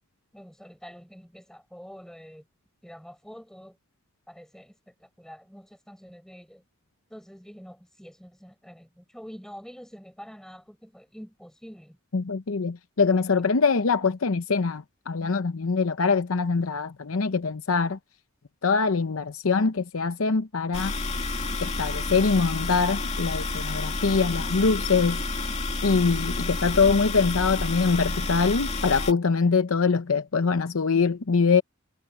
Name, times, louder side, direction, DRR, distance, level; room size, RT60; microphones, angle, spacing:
voice 1, 0.3-2.4 2.8-3.8 4.3-6.6 7.1-12.0, equal, ahead, 6.5 m, -46 dB
voice 2, 12.1-18.0 18.6-20.9 21.6-25.2 25.8-31.6, left 4 dB, 85° left, 0.8 m, -23 dB
sound 1, 20.7-29.1, left 3 dB, 30° left, 2.4 m, -30 dB
head